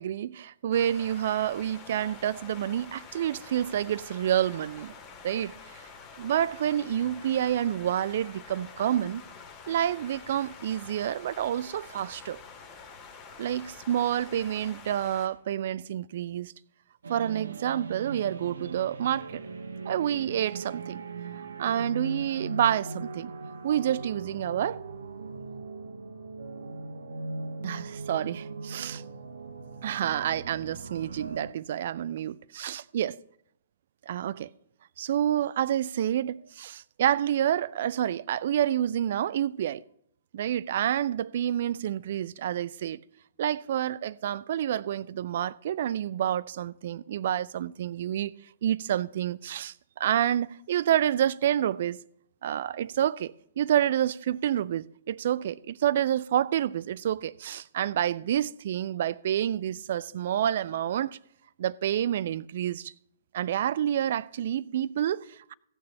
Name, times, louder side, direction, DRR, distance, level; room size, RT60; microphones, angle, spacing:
voice 1, 0.0-4.9 5.2-5.5 6.2-9.2 9.7-12.4 13.4-16.5 17.1-19.4 19.9-21.0 21.6-23.3 23.6-24.8 27.6-29.0 29.8-33.2 34.1-34.5 35.0-39.8 40.3-43.0 43.4-48.3 48.6-52.0 52.4-61.2 61.6-62.9 63.3-65.5, right 10 dB, 50° right, 0.4 m, -28 dB
sound 1, 0.7-15.3, left 5 dB, 25° left, 2.3 m, -47 dB
sound 2, 17.0-31.5, right 3 dB, 65° right, 1.0 m, -39 dB
16.5 x 6.6 x 5.6 m
figure-of-eight pair, 115°, 0 cm